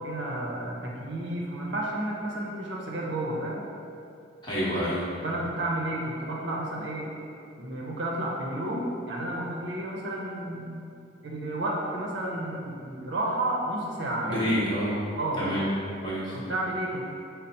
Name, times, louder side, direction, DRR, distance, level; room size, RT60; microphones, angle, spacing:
voice 1, 0.0-3.6 5.2-7.1 7.6-10.8 11.2-14.4 15.1-15.6 16.3-17.0, right 1 dB, 65° right, -3 dB, 0.7 m, -31 dB
voice 2, 4.4-5.1 14.2-15.0 15.4-15.7 16.0-16.4, equal, 20° left, -8 dB, 0.9 m, -28 dB
5.5 x 2.0 x 4.0 m, 2.5 s
head